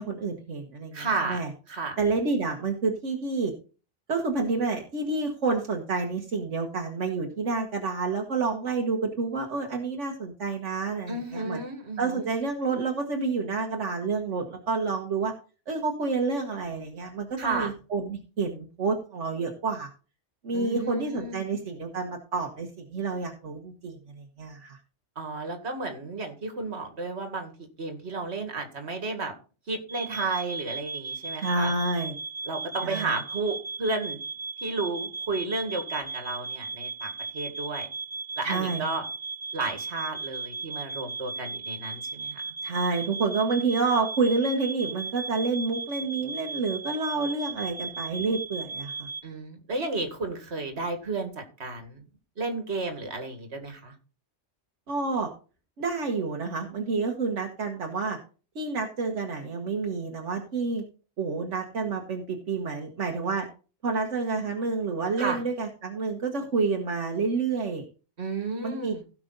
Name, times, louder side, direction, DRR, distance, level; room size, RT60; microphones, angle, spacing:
voice 1, 0.0-1.5 2.0-3.5 4.1-11.6 12.0-15.3 15.7-19.9 20.4-24.8 31.4-32.2 32.8-33.2 38.4-38.8 42.6-49.1 54.9-55.3 55.8-58.2 58.5-60.8 61.2-63.5 63.8-67.8 68.6-68.9, right 4 dB, 80° right, 1 dB, 1.7 m, -29 dB
voice 2, 0.9-1.4 1.7-2.0 11.1-12.3 17.4-17.7 20.5-21.5 25.2-27.5 27.8-29.3 29.7-31.7 32.5-34.2 34.6-37.9 38.4-39.0 39.5-42.4 49.2-51.3 51.6-52.0 52.4-53.9 65.2-65.4 68.2-69.0, right 3 dB, 65° right, 6 dB, 2.2 m, -32 dB
sound 1, 29.9-49.2, right 4 dB, 35° right, 1.6 m, -36 dB
16.5 x 5.9 x 3.9 m, 0.35 s
omnidirectional pair, 1.2 m